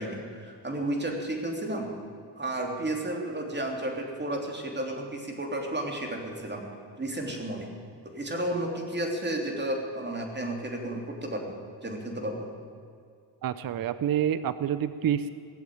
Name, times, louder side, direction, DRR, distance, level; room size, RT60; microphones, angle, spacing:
voice 1, 0.0-1.9 2.4-6.6 7.0-7.7 8.0-12.5, right 1 dB, 25° right, 1 dB, 3.1 m, -32 dB
voice 2, 13.4-15.3, right 9 dB, 55° right, 13 dB, 0.6 m, -28 dB
17.5 x 7.3 x 9.3 m, 2.3 s
cardioid pair, 70°, 42 cm